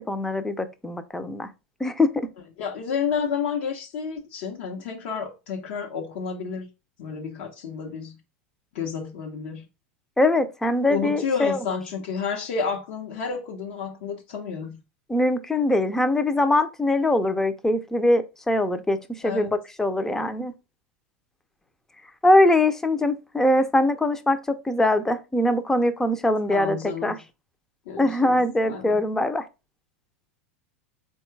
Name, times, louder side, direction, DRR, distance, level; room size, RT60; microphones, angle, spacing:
voice 1, 0.0-1.5 1.8-2.3 10.2-11.6 15.1-20.5 22.2-26.8 27.0-27.1 28.0-29.4, left 1 dB, 5° left, 0.5 m, -22 dB
voice 2, 2.6-6.7 7.0-8.2 8.7-9.6 10.9-14.8 19.2-19.5 26.5-27.2 27.9-29.0, left 6 dB, 70° left, 0.8 m, -30 dB
3.7 x 2.3 x 4.5 m
hypercardioid pair, 115°, 7 cm